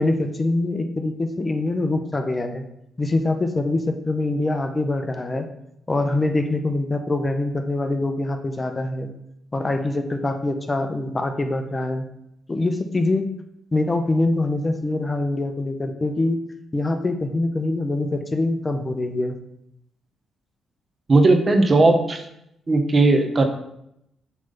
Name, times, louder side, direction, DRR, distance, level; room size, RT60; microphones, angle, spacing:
voice 1, 0.0-2.6 3.0-5.5 5.9-9.1 9.5-12.1 12.5-13.3 13.7-16.4 16.7-19.3, left 2 dB, 30° left, 6 dB, 0.8 m, -24 dB
voice 2, 21.1-22.2 22.7-23.5, right 2 dB, 35° right, 6 dB, 1.0 m, -17 dB
7.4 x 3.4 x 5.4 m, 0.79 s
supercardioid pair, 65°, 0 cm